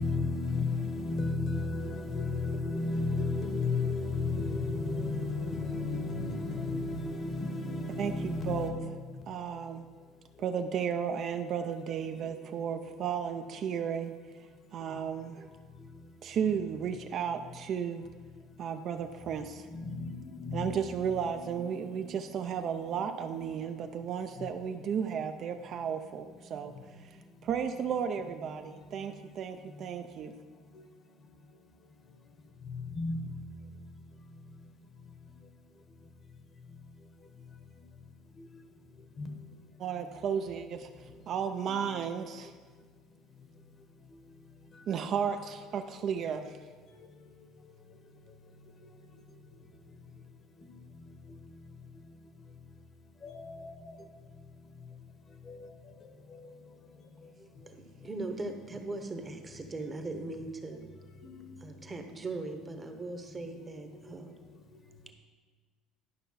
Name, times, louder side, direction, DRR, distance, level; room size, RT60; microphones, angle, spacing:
voice 1, 0.0-8.9 19.7-20.7 21.3-21.7 22.9-23.0 24.4-24.5 33.0-33.2 39.2-39.4 41.7-41.8 53.2-53.7 55.5-55.6, left 3 dB, 30° left, 1.0 m, -33 dB
voice 2, 8.0-8.8 9.3-9.9 10.4-14.1 14.7-15.5 16.2-18.1 18.6-19.7 20.5-26.7 27.0-27.1 27.4-30.4 39.8-42.5 44.9-46.6, right 7 dB, 40° right, 0.4 m, -34 dB
voice 3, 57.7-60.8 61.6-64.3, right 2 dB, 15° right, 0.9 m, -39 dB
11.5 x 5.5 x 5.6 m
cardioid pair, 150°, 0 cm